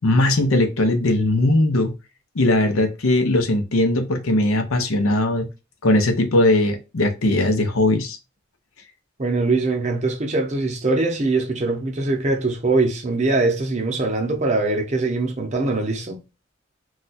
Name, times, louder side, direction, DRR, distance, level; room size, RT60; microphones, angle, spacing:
voice 1, 0.0-1.9 2.3-5.5 5.8-8.2, left 1 dB, 80° left, 0.7 m, -19 dB
voice 2, 9.2-16.2, right 3 dB, 30° right, 0.6 m, -22 dB
2.4 x 2.2 x 3.9 m
head